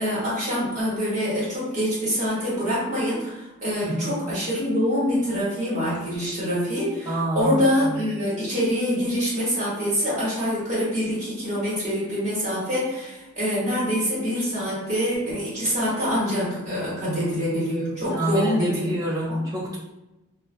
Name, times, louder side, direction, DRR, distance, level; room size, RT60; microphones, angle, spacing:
voice 1, 0.0-18.9 19.3-19.4, equal, 35° right, -9 dB, 1.1 m, -25 dB
voice 2, 3.8-4.2 7.1-7.5 7.8-8.0 17.0-17.6 18.1-19.8, right 1 dB, 15° right, -5 dB, 0.5 m, -27 dB
2.3 x 2.2 x 2.4 m, 0.99 s
head